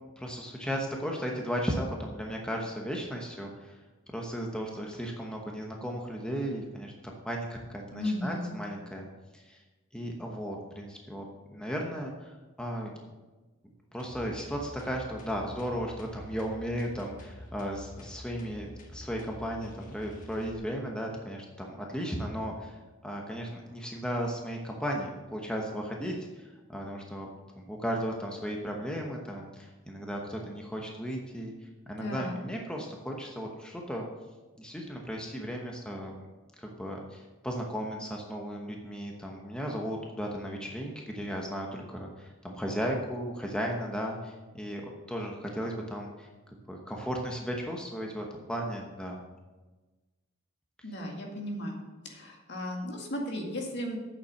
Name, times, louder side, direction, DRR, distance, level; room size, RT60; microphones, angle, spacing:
voice 1, 0.2-3.8 4.1-6.9 7.2-9.1 9.3-9.6 9.9-11.2 11.5-12.3 12.6-12.9 13.9-22.8 23.0-27.3 27.6-31.5 31.9-34.1 34.6-36.2 36.6-46.3 46.7-49.2, equal, 5° left, 0 dB, 1.0 m, -35 dB
voice 2, 7.9-8.6 32.0-32.4 50.8-54.0, left 1 dB, 55° left, 1 dB, 2.0 m, -35 dB
sound 1, 14.0-20.6, equal, 40° left, 1.5 m, -47 dB
8.7 x 7.2 x 6.5 m, 1.2 s
head